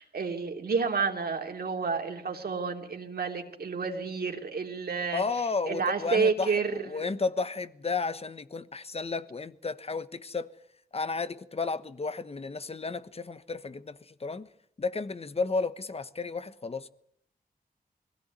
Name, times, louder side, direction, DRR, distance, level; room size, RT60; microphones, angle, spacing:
voice 1, 0.0-5.2 5.6-7.1, right 5 dB, 75° right, 3.1 m, -30 dB
voice 2, 5.1-10.5 10.9-14.5 14.8-16.9, left 4 dB, 40° left, 1.1 m, -33 dB
22.5 x 16.5 x 9.5 m
wide cardioid pair, 105°, 16 cm